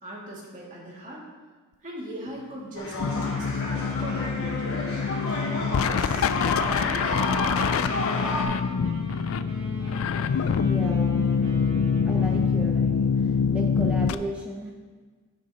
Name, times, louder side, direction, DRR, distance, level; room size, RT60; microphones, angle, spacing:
voice 1, 0.0-1.2 1.8-4.8 5.4-6.9, right 1 dB, 40° right, -5 dB, 2.5 m, -40 dB
sound 1, 2.8-8.4, left 2 dB, 85° left, 2.2 m, -31 dB
sound 2, 3.0-14.1, left 6 dB, 70° left, 0.4 m, -25 dB
Wind instrument woodwind instrument, 3.1-12.7, left 1 dB, 60° right, 1.8 m, -43 dB
voice 2, 10.2-11.7 12.0-14.7, right 1 dB, 5° right, -1 dB, 0.7 m, -37 dB
10.5 x 10.0 x 3.0 m, 1.4 s
head